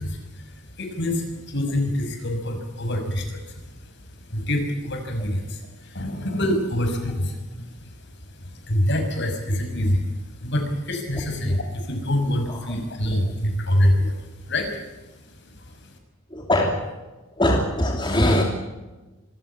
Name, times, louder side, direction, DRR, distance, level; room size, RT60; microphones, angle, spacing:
voice 1, 0.0-8.0 8.3-10.1 10.3-15.9, left 1 dB, 60° left, 5 dB, 6.0 m, -26 dB
voice 2, 16.3-16.9 17.3-18.4, left 1 dB, 20° left, 1 dB, 2.9 m, -22 dB
26.5 x 16.0 x 8.8 m, 1.2 s
head